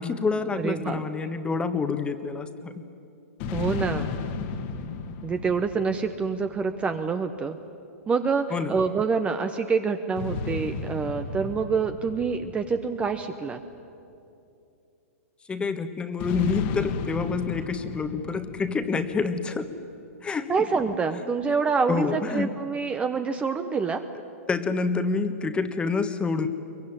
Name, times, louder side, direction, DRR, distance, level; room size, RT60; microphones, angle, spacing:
voice 1, 0.0-2.7 8.5-8.8 15.5-19.7 20.2-20.6 21.9-22.5 24.5-26.5, left 4 dB, 15° left, 9 dB, 1.4 m, -27 dB
voice 2, 0.6-1.0 3.5-4.1 5.2-7.6 8.1-13.6 20.5-24.0, right 5 dB, 15° right, 8 dB, 0.9 m, -26 dB
sound 1, 3.4-7.0 10.2-13.8 16.2-19.6, left 4 dB, 45° left, 1.8 m, -34 dB
23.0 x 22.0 x 9.9 m, 2.7 s
hypercardioid pair, 130°, 8 cm